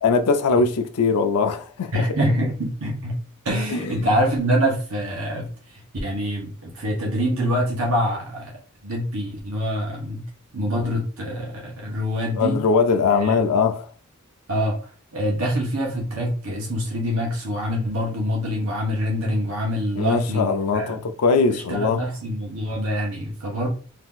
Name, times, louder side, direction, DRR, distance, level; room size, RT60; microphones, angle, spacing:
voice 1, 0.0-2.1 3.7-4.1 12.4-13.9 20.0-22.0, left 4 dB, 85° left, 0.4 m, -21 dB
voice 2, 1.9-3.2 3.4-8.5 8.8-10.3 10.5-12.6 13.2-13.3 14.5-14.8 15.1-21.0 21.5-23.7, equal, 75° right, 0.9 m, -25 dB
2.8 x 2.4 x 3.6 m
head